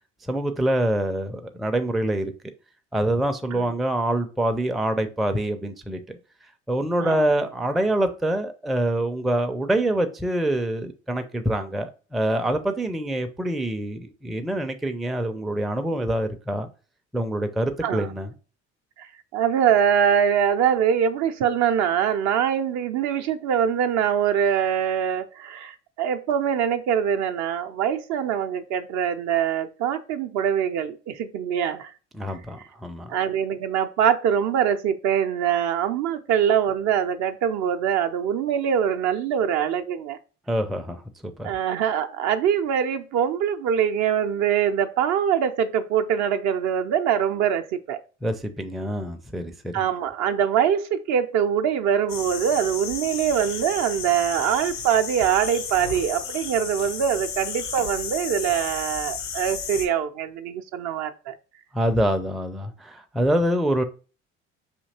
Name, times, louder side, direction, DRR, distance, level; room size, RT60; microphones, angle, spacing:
voice 1, 0.3-2.3 2.9-6.2 6.7-16.7 17.1-18.3 32.1-33.1 40.5-41.5 48.2-49.8 61.7-63.8, right 1 dB, ahead, 0.4 m, -25 dB
voice 2, 19.3-31.9 33.1-40.2 41.4-48.0 49.7-61.3, right 8 dB, 55° right, 0.5 m, -23 dB
sound 1, 52.1-59.9, left 6 dB, 85° left, 0.7 m, -33 dB
4.9 x 2.8 x 2.8 m
hypercardioid pair, 60°, 35 cm